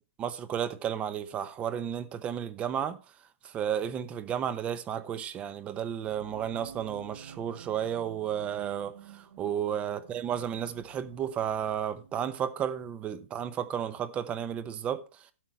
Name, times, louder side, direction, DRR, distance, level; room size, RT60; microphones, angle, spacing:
voice 1, 0.2-3.0 3.4-8.9 9.4-15.3, right 9 dB, 15° right, 0.8 m, -33 dB
sound 1, 6.0-12.2, right 8 dB, 75° right, 1.3 m, -51 dB
11.5 x 6.1 x 4.3 m
hypercardioid pair, 160°, 7 cm